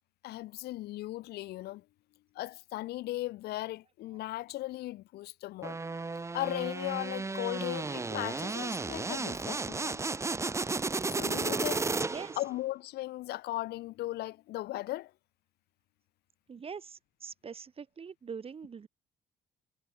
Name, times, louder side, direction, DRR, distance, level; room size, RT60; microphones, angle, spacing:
voice 1, 0.2-1.8 2.3-5.8 6.3-10.0 11.1-11.9 12.4-15.1, left 16 dB, 75° left, 0.7 m, -37 dB
sound 1, 5.6-12.5, right 3 dB, 15° right, 0.9 m, -33 dB
voice 2, 12.0-12.4 16.5-18.9, right 6 dB, 35° right, 4.3 m, -43 dB
cardioid pair, 110°, 17 cm